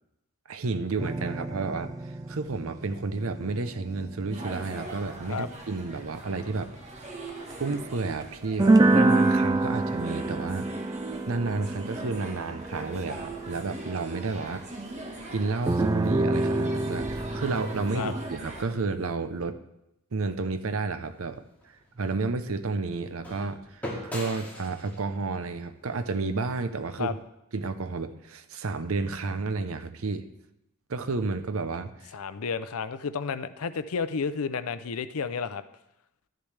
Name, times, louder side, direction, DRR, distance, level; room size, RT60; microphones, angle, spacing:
voice 1, 0.5-6.7 7.6-10.7 11.3-14.6 15.3-19.6 20.1-21.4 22.0-27.2 27.5-30.2 30.9-32.1, right 3 dB, 65° right, 11 dB, 0.7 m, -31 dB
sound 1, 1.0-6.8 7.3-7.5 8.2-8.3 8.6-14.6 15.7-18.3, right 2 dB, 15° right, 0.3 m, -27 dB
sound 2, 4.3-18.7, right 2 dB, 30° right, 1.4 m, -41 dB
sound 3, 21.0-27.2, left 1 dB, 10° left, 2.3 m, -43 dB
voice 2, 32.1-35.6, left 5 dB, 75° left, 13 dB, 0.5 m, -31 dB
12.5 x 10.5 x 3.3 m, 0.86 s
head